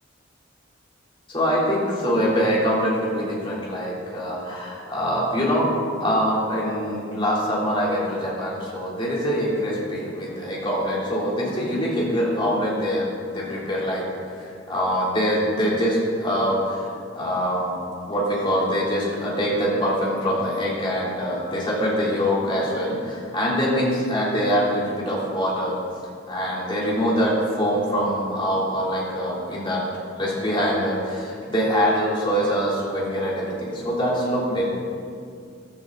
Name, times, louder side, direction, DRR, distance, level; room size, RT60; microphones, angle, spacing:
voice 1, 1.3-5.7 6.0-14.0 14.3-16.9 17.1-17.8 18.1-25.8 26.3-29.8 30.2-34.7, equal, 25° left, -5 dB, 3.3 m, -24 dB
15.0 x 12.0 x 4.0 m, 2.3 s
head